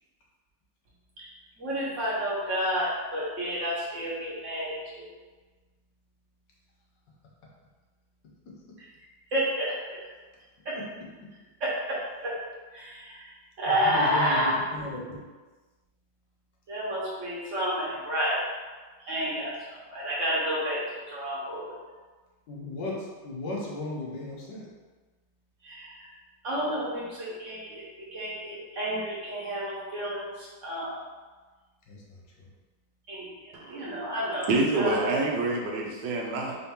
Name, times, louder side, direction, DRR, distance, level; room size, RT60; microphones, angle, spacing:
voice 1, 1.6-5.1 8.8-8.9 9.3-10.0 10.6-10.8 11.6-12.3 12.7-13.3 13.6-14.5 16.7-18.4 19.0-21.7 25.6-26.1 26.4-27.8 28.1-31.0 33.1-35.0, equal, 45° right, -7 dB, 1.4 m, -30 dB
voice 2, 13.7-15.0 22.5-24.7 31.9-32.2, left 2 dB, 75° left, -3 dB, 1.5 m, -36 dB
voice 3, 33.5-34.1 34.5-36.6, right 2 dB, 80° right, 0 dB, 1.3 m, -27 dB
4.5 x 2.8 x 3.5 m, 1.3 s
omnidirectional pair, 1.9 m